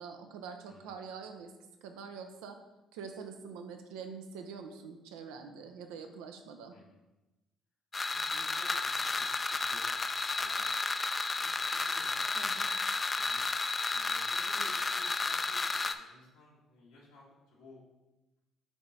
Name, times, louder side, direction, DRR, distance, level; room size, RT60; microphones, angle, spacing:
voice 1, 0.0-1.5 1.8-2.6 2.9-6.7 12.4-12.7, right 5 dB, 85° right, 6 dB, 0.6 m, -45 dB
sound 1, 7.9-15.9, left 3 dB, 30° left, 0.5 m, -32 dB
voice 2, 8.1-10.8 11.3-12.5 12.9-13.4 13.9-17.8, left 3 dB, 85° left, -6 dB, 2.0 m, -56 dB
7.7 x 3.3 x 4.1 m, 1.0 s
hypercardioid pair, 60°, 0 cm